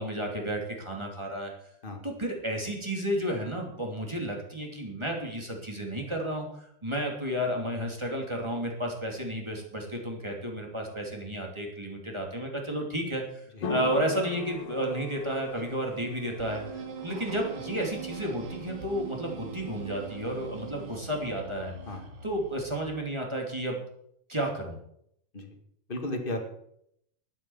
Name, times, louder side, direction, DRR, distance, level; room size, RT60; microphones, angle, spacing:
voice 1, 0.0-1.5 2.0-21.7 22.2-23.8 24.3-24.8, right 1 dB, 10° right, 0 dB, 2.4 m, -32 dB
sound 1, 13.6-20.9, left 4 dB, 65° left, 3.2 m, -39 dB
sound 2, 16.4-22.9, right 6 dB, 55° right, 2.2 m, -42 dB
voice 2, 25.9-26.5, left 1 dB, 20° left, 4 dB, 1.5 m, -34 dB
12.0 x 10.0 x 7.2 m, 0.73 s
omnidirectional pair, 3.4 m